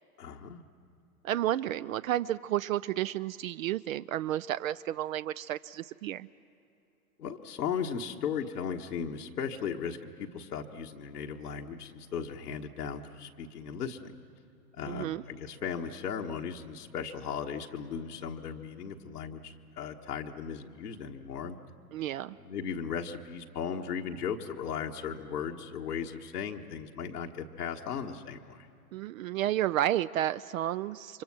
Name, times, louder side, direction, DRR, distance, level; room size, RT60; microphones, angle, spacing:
voice 1, 0.2-0.7 7.2-14.1 14.7-21.6 22.3-28.7, left 7 dB, 80° left, 1 dB, 1.5 m, -37 dB
voice 2, 1.2-6.3 14.9-15.2 21.9-22.4 28.9-31.2, right 12 dB, 60° right, 15 dB, 0.6 m, -31 dB
29.5 x 24.5 x 6.1 m, 2.7 s
hypercardioid pair, 105°, 46 cm